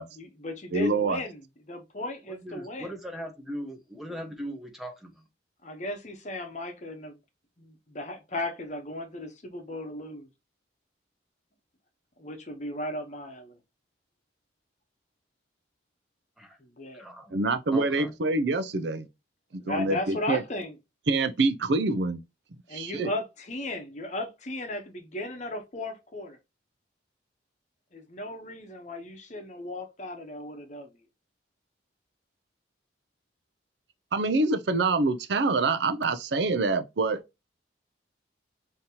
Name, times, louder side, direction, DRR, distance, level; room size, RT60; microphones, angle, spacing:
voice 1, 0.2-2.9 5.6-7.2 7.6-10.3 12.2-13.6 16.6-17.0 19.6-20.7 22.7-26.4 27.9-30.9, left 1 dB, 40° left, 0.8 m, -36 dB
voice 2, 0.7-1.2 17.3-19.1 19.5-20.4 21.1-22.2 22.7-23.1 34.1-37.2, right 3 dB, 65° right, 0.5 m, -26 dB
voice 3, 2.3-5.1 16.4-16.6 17.0-17.4 17.7-18.1, equal, ahead, 0.8 m, -39 dB
5.1 x 2.8 x 2.8 m
head